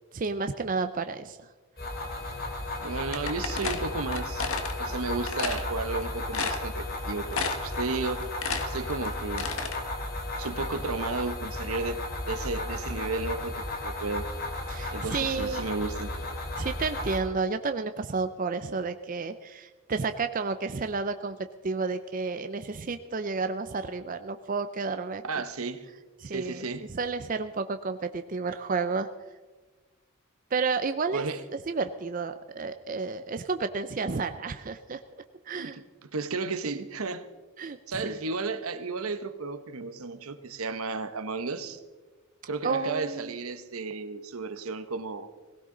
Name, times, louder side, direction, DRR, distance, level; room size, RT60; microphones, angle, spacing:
voice 1, 0.1-1.5 14.7-15.7 16.6-21.4 21.6-25.2 26.2-26.6 26.9-29.1 30.5-31.2 31.7-35.8 37.6-38.2 42.6-43.3, right 4 dB, 40° right, 9 dB, 0.5 m, -31 dB
sound 1, 1.8-17.2, left 2 dB, 45° left, 2.7 m, -34 dB
voice 2, 2.8-4.5 4.8-8.3 8.7-9.5 10.4-12.0 12.3-14.3 14.9-16.1 25.2-25.9 26.3-26.9 31.1-31.4 35.6-35.8 36.1-37.2 37.9-41.8 42.5-45.3, right 3 dB, 75° right, 11 dB, 1.0 m, -33 dB
sound 2, 3.1-4.7 5.3-5.6 6.0-6.1 6.3-7.0 7.3-7.8 8.1-9.8, left 5 dB, 70° left, 1.4 m, -31 dB
18.5 x 17.0 x 3.9 m, 1.3 s
head